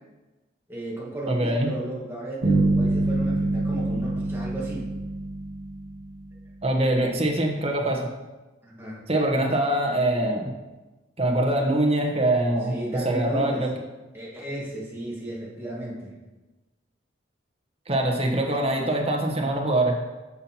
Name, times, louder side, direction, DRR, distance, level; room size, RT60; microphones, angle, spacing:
voice 1, 0.7-4.9 8.6-9.0 12.7-13.7 14.1-16.1, right 1 dB, 10° right, -5 dB, 1.6 m, -34 dB
voice 2, 1.3-1.8 6.6-8.1 9.1-10.5 11.2-13.7 17.9-19.9, right 1 dB, 30° right, 1 dB, 1.0 m, -23 dB
sound 1, 2.4-6.4, right 2 dB, 75° right, 1.1 m, -25 dB
9.7 x 5.7 x 2.9 m, 1.1 s
head